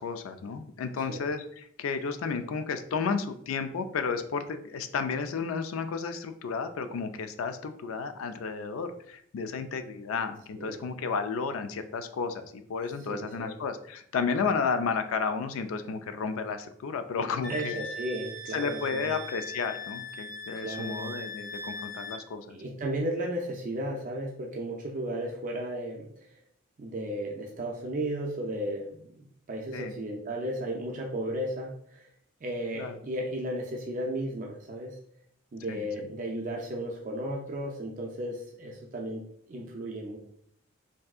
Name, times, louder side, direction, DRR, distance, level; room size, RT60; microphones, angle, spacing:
voice 1, 0.0-17.8 18.5-22.6 29.7-29.9 32.8-33.0 35.7-35.8, left 5 dB, 75° left, 9 dB, 0.3 m, -32 dB
voice 2, 13.1-13.5 17.5-19.1 20.6-21.1 22.5-26.1 26.8-32.1 32.4-34.9 35.5-39.2 39.5-40.2, right 1 dB, 40° right, -1 dB, 0.4 m, -34 dB
Wind instrument woodwind instrument, 17.4-22.2, left 1 dB, 45° left, 0.7 m, -40 dB
3.4 x 2.7 x 2.3 m, 0.66 s
head